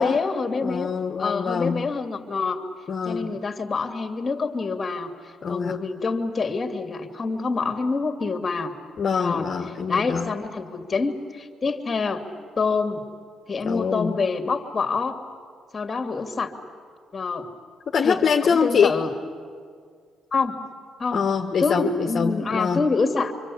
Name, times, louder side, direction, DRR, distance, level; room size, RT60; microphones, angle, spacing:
voice 1, 0.0-0.9 1.2-2.6 3.0-8.7 9.1-9.5 9.9-12.2 12.6-13.0 13.5-15.2 15.7-16.5 17.1-17.5 18.0-19.1 20.3-20.6 21.0-21.2 21.6-23.3, left 4 dB, 30° left, 6 dB, 2.6 m, -26 dB
voice 2, 0.6-1.9 2.9-3.3 5.4-5.8 9.0-10.3 13.6-14.2 17.9-18.9 21.1-22.8, left 6 dB, 50° left, 3 dB, 1.4 m, -24 dB
26.0 x 25.5 x 8.6 m, 2.1 s
cardioid pair, 90°, 0 cm